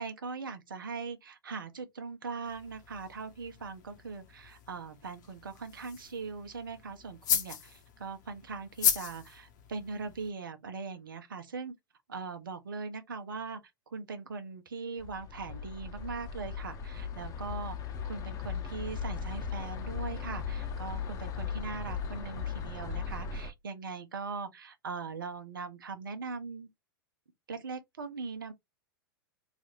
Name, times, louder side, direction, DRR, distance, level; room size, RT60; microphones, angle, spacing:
voice 1, 0.0-11.7 12.1-13.6 13.9-17.8 18.0-26.7 27.5-28.5, right 4 dB, 70° right, 0.8 m, -40 dB
sound 1, 2.4-10.3, left 9 dB, 55° left, 0.9 m, -36 dB
sound 2, 15.0-23.5, left 6 dB, 30° left, 0.8 m, -37 dB
4.1 x 2.5 x 2.9 m
figure-of-eight pair, 95°, 12 cm